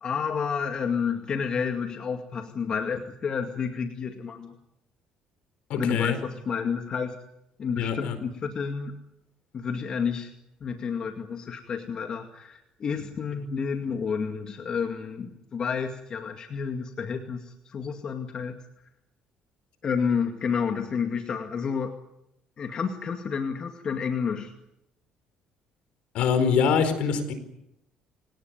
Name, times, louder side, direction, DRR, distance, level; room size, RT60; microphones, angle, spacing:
voice 1, 0.0-4.6 5.7-7.2 7.6-8.9 9.5-10.3 10.6-18.6 19.8-21.9 22.6-24.5, left 6 dB, 45° left, 5 dB, 2.2 m, -30 dB
voice 2, 5.7-6.2 7.8-8.2 26.1-27.3, left 6 dB, 75° left, 11 dB, 4.6 m, -24 dB
27.5 x 18.0 x 9.4 m, 0.82 s
cardioid pair, 100°, 2 cm